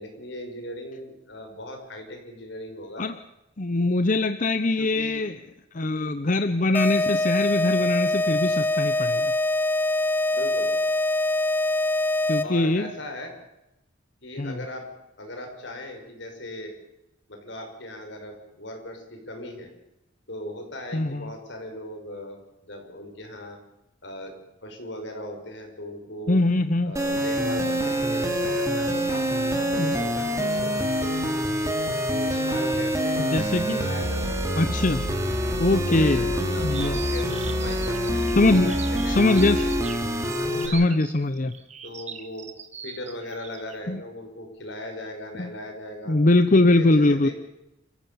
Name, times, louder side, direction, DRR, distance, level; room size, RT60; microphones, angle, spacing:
voice 1, 0.0-3.1 4.8-5.2 10.3-10.7 12.4-13.3 14.2-14.9 15.2-16.7 17.3-19.7 20.3-22.4 22.6-23.6 24.0-24.3 24.6-26.4 26.8-31.2 31.6-31.7 32.2-33.2 33.8-34.6 35.7-39.9 40.2-41.0 41.8-42.5 42.8-46.2 46.6-47.3, left 1 dB, 65° left, 3 dB, 5.9 m, -38 dB
voice 2, 3.6-5.4 5.7-9.4 12.3-12.9 14.4-14.6 20.9-21.3 26.3-27.0 29.7-30.0 33.2-33.9 34.6-35.1 35.6-37.0 38.4-38.8 39.1-39.7 40.7-41.5 43.9-44.0 45.4-45.5 46.1-47.3, left 2 dB, 40° left, 10 dB, 0.8 m, -22 dB
sound 1, 6.7-12.7, left 2 dB, 10° left, 0.7 m, -24 dB
sound 2, 27.0-40.7, equal, 15° right, 2.9 m, -26 dB
sound 3, 36.7-43.8, right 7 dB, 35° right, 1.8 m, -40 dB
28.5 x 15.0 x 7.1 m, 0.90 s
head